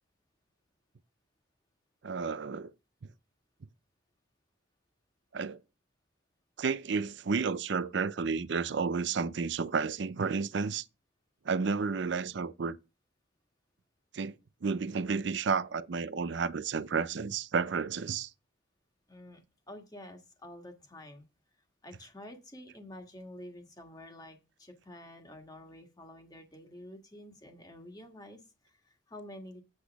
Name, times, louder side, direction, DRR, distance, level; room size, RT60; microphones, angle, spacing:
voice 1, 2.0-2.7 5.3-5.6 6.6-10.8 11.4-12.8 14.1-14.3 14.6-18.3, right 5 dB, 60° right, 0.5 m, -31 dB
voice 2, 19.1-21.3 21.8-29.6, left 1 dB, 20° left, 1.6 m, -49 dB
8.0 x 8.0 x 3.5 m
head